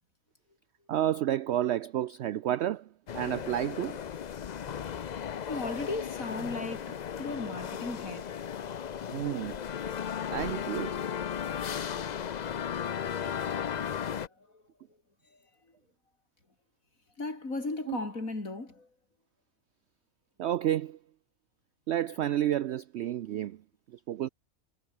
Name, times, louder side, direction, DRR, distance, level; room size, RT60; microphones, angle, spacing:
voice 1, 0.9-2.9 3.1-4.0 9.1-9.6 10.3-11.0 17.9-18.0 20.4-21.0 21.9-23.6 23.9-24.3, right 12 dB, 65° right, 0.8 m, -30 dB
sound 1, 3.1-14.3, left 8 dB, 55° left, 0.5 m, -35 dB
voice 2, 5.5-8.3 14.4-14.6 17.2-18.9, left 2 dB, 75° left, 5.1 m, -36 dB
omnidirectional pair, 1.4 m